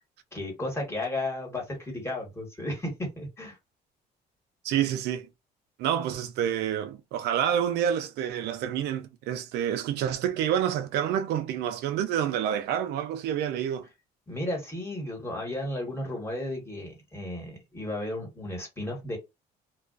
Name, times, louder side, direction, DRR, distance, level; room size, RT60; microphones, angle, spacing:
voice 1, 0.3-3.6 14.3-19.2, left 1 dB, 15° left, 1.2 m, -34 dB
voice 2, 4.6-5.3 5.8-13.9, right 9 dB, 80° right, 0.4 m, -28 dB
2.3 x 2.2 x 2.4 m
cardioid pair, 110°, 17 cm